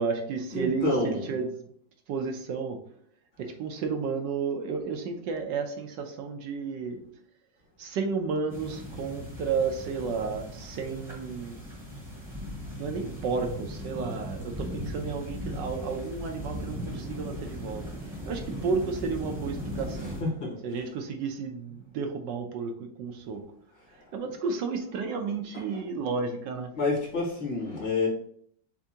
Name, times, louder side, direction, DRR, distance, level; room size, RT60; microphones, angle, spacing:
voice 1, 0.0-1.5 2.1-2.8 3.4-7.0 7.8-11.6 12.8-17.8 18.3-20.2 20.6-23.4 24.1-26.7, right 5 dB, 75° right, 4 dB, 1.2 m, -32 dB
voice 2, 0.5-1.3 20.0-20.6 25.5-25.8 26.7-28.1, left 3 dB, 70° left, -4 dB, 2.4 m, -29 dB
sound 1, 8.5-20.2, equal, ahead, 0.8 m, -38 dB
6.9 x 2.6 x 2.8 m, 0.63 s
omnidirectional pair, 2.1 m